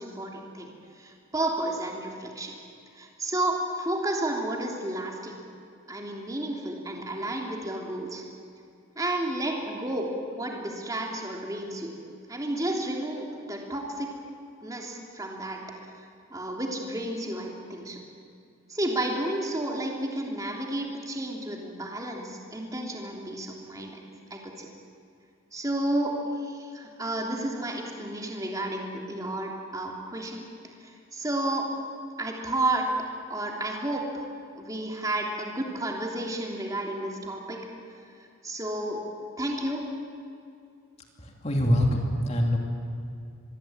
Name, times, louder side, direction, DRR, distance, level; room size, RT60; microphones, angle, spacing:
voice 1, 0.0-2.6 3.0-5.3 5.9-8.2 8.9-12.0 12.3-14.1 14.6-15.7 16.3-18.0 18.7-24.0 24.3-24.7 25.5-30.5 30.8-31.7 32.2-32.9 33.3-34.3 34.6-37.7 38.4-39.0 39.4-39.9, right 1 dB, 15° right, 0 dB, 3.2 m, -31 dB
voice 2, 41.2-42.6, equal, 30° left, 1 dB, 2.7 m, -24 dB
25.5 x 21.5 x 8.9 m, 2.4 s
head